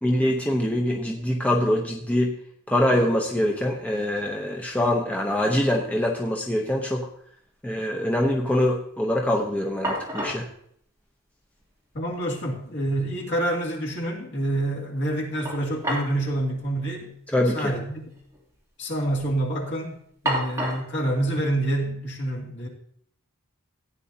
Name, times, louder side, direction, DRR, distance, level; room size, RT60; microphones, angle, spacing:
voice 1, 0.0-2.3 2.7-7.1 7.6-10.5 17.3-17.7, left 1 dB, 5° left, 0 dB, 0.7 m, -24 dB
sound 1, 3.4-3.5 3.7-4.3 4.7-5.6 5.8-5.9 9.3-9.4 9.8-10.5 11.6-11.7 12.1-12.2 15.4-16.2 16.5-16.6 17.5-17.7 18.0-18.5 19.0-19.3 20.2-20.9, right 1 dB, 15° right, 2.8 m, -31 dB
voice 2, 11.9-18.1 18.8-20.0 20.2-22.7, right 1 dB, 55° left, -2 dB, 2.5 m, -27 dB
15.0 x 9.0 x 2.8 m, 0.66 s
head